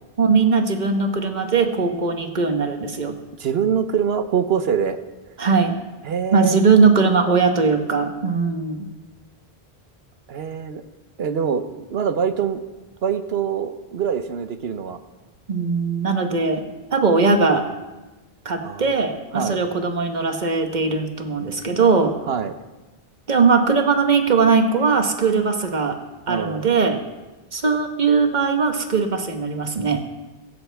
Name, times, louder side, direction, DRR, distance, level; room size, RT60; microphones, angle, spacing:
voice 1, 0.2-3.1 5.4-5.8 6.3-8.9 15.5-16.6 16.9-17.6 18.4-22.1 23.3-26.0 26.3-27.0 27.5-30.0, right 4 dB, 45° right, 5 dB, 1.3 m, -19 dB
voice 2, 3.4-5.0 5.3-5.4 6.0-6.6 10.3-10.8 11.2-12.6 13.0-15.0 18.6-18.8 19.3-19.6 22.3-22.5 26.3-26.7, right 7 dB, 70° right, 10 dB, 1.1 m, -24 dB
16.5 x 15.0 x 3.4 m, 1.1 s
omnidirectional pair, 1.1 m